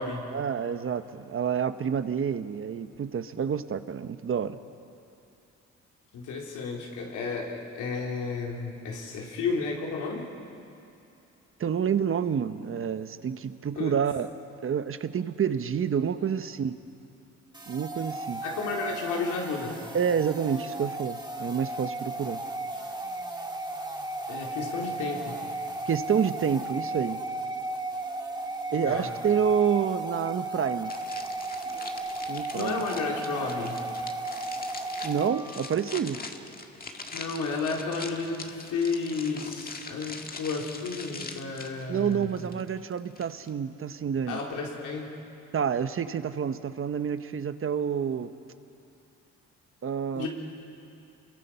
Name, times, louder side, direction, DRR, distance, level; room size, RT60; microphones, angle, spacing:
voice 1, 0.3-4.6 11.6-14.3 14.6-16.8 17.7-18.4 19.9-22.4 25.9-27.2 28.7-30.9 32.3-32.8 35.0-36.2 41.9-44.4 45.5-48.3 49.8-50.3, right 7 dB, 45° right, 11 dB, 1.1 m, -28 dB
voice 2, 6.1-10.3 13.8-13.9 18.4-19.8 24.3-25.4 28.7-29.1 32.5-33.8 37.1-42.3 44.3-45.2 50.1-50.3, left 4 dB, 90° left, -1 dB, 3.8 m, -32 dB
sound 1, 17.5-35.7, right 2 dB, 15° right, 1.9 m, -35 dB
sound 2, 30.9-43.5, left 3 dB, 30° left, 1.8 m, -43 dB
28.0 x 22.5 x 5.8 m, 2.7 s
cardioid pair, 90°, 30 cm